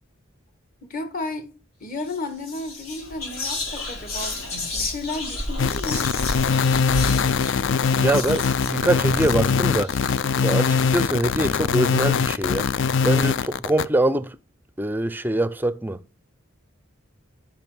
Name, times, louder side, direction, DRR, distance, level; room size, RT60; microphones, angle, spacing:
voice 1, 0.8-1.5 1.8-4.4 4.7-6.0, left 2 dB, 40° left, 1.6 m, -32 dB
Whispering, 2.0-2.2 2.4-10.5, left 2 dB, 90° left, 4.7 m, -32 dB
sound 1, 5.6-13.8, left 5 dB, 60° left, 0.4 m, -22 dB
voice 2, 8.0-9.9 10.4-12.7 13.0-14.4 14.8-16.0, right 1 dB, 10° right, 0.4 m, -23 dB
8.8 x 5.9 x 6.0 m
head